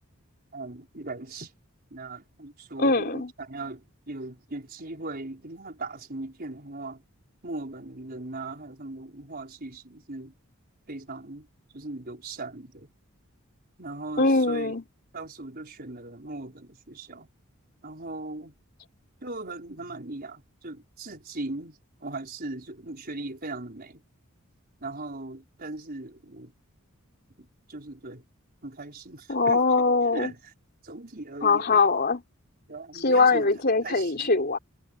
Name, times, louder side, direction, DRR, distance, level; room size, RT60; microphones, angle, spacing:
voice 1, 0.5-1.5 1.9-7.0 7.4-10.3 10.9-11.5 11.7-12.9 13.8-14.7 15.1-17.3 17.8-18.5 19.2-24.0 24.8-26.5 27.4-28.2 28.6-29.6 30.1-30.5 30.8-31.8 32.7-34.4, right 2 dB, 45° right, 5.0 m, -39 dB
voice 2, 2.8-3.3 14.2-14.8 29.3-30.3 31.4-32.2 33.0-34.6, left 3 dB, 45° left, 3.8 m, -22 dB
head